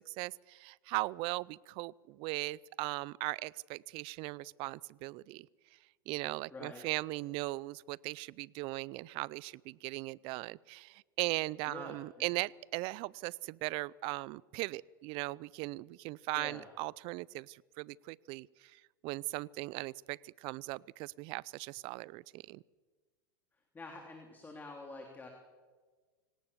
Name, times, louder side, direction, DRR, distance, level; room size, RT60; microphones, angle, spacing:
voice 1, 0.0-5.5 6.1-22.6, right 22 dB, 50° right, 25 dB, 0.6 m, -39 dB
voice 2, 6.5-6.9 11.7-12.3 16.3-16.7 23.7-25.3, left 3 dB, 15° left, 2 dB, 3.3 m, -47 dB
26.0 x 18.0 x 7.1 m, 1.4 s
hypercardioid pair, 100°, 12 cm